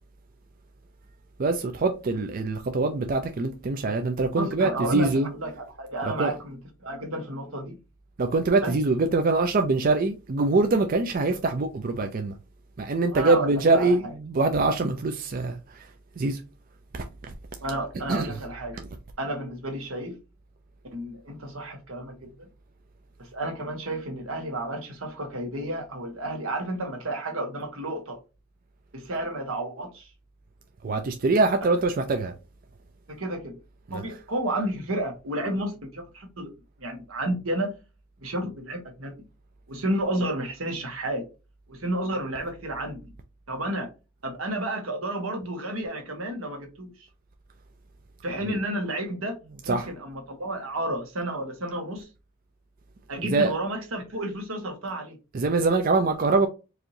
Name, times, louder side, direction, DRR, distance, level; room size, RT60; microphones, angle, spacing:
voice 1, 1.4-5.3 6.0-6.3 8.2-12.3 12.8-15.8 16.2-16.4 16.9-17.0 18.1-18.3 30.8-32.3 33.9-34.0 48.4-48.6 49.7-49.9 53.2-53.5 55.3-56.5, right 3 dB, 45° right, 0.4 m, -24 dB
voice 2, 4.4-7.8 8.6-8.7 13.1-14.1 17.6-18.8 19.2-20.1 20.9-22.5 23.2-28.2 28.9-30.1 33.1-33.6 33.9-36.5 36.8-37.7 38.2-39.1 39.7-41.2 41.7-43.1 43.5-43.9 44.2-46.9 48.2-49.4 49.6-52.1 53.1-55.2, right 1 dB, 85° right, 1.4 m, -31 dB
4.8 x 2.6 x 2.9 m
head